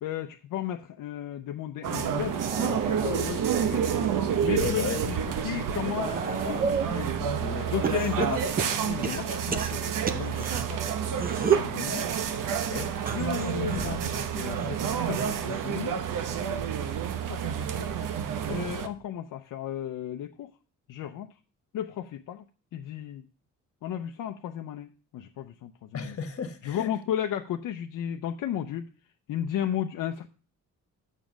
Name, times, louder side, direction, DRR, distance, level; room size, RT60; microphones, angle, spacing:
voice 1, 0.0-4.1 4.4-5.2 5.4-6.7 7.7-8.6 8.8-12.1 13.1-16.0 17.3-17.9 18.5-20.5 20.9-21.3 21.7-22.5 22.7-23.2 23.8-26.2 26.6-28.9 29.3-30.3, left 10 dB, 70° left, 6 dB, 0.6 m, -34 dB
sound 1, 1.8-18.9, right 8 dB, 75° right, 0.9 m, -29 dB
sound 2, 2.2-4.5 5.0-7.0 7.8-10.6 11.1-11.8 12.9-15.8 16.2-16.6 17.8-17.9, right 5 dB, 30° right, 0.7 m, -33 dB
voice 2, 4.6-5.0 6.9-8.1 10.3-10.7 12.5-12.9 25.9-26.9, left 6 dB, 45° left, 7 dB, 1.5 m, -36 dB
7.2 x 6.4 x 6.1 m, 0.36 s
cardioid pair, 140°, 32 cm